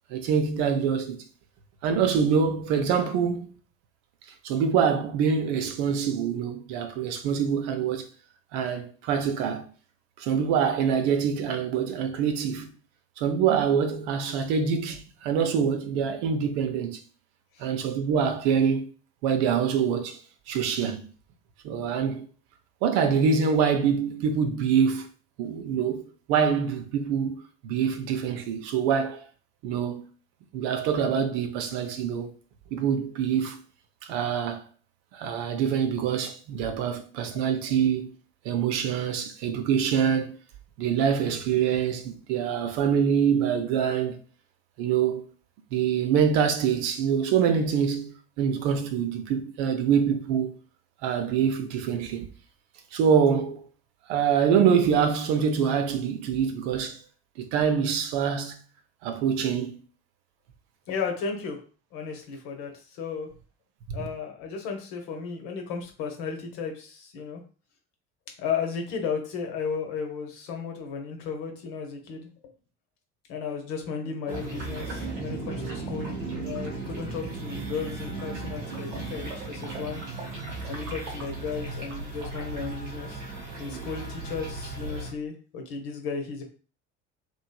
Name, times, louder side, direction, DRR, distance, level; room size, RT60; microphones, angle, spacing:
voice 1, 0.1-1.2 1.8-3.6 4.4-8.1 8.5-9.6 10.2-12.7 13.2-17.0 17.6-18.9 19.2-20.2 20.5-21.1 21.6-22.3 22.8-25.1 25.4-27.3 27.6-29.2 29.6-30.0 30.5-32.3 32.7-33.6 34.0-34.6 35.1-38.1 38.4-40.4 40.8-44.2 44.8-45.3 45.7-50.6 51.0-52.3 52.9-53.6 54.1-57.0 57.4-58.6 59.0-59.8 63.9-64.0, right 7 dB, 65° right, 0.6 m, -25 dB
voice 2, 60.9-61.6 61.9-63.3 63.9-67.4 68.4-72.3 73.3-80.0 80.7-83.2 83.6-86.4, left 5 dB, 60° left, 1.0 m, -34 dB
sound 1, 74.3-85.1, right 3 dB, 85° right, 1.0 m, -36 dB
3.1 x 2.6 x 2.3 m
hypercardioid pair, 60°, 37 cm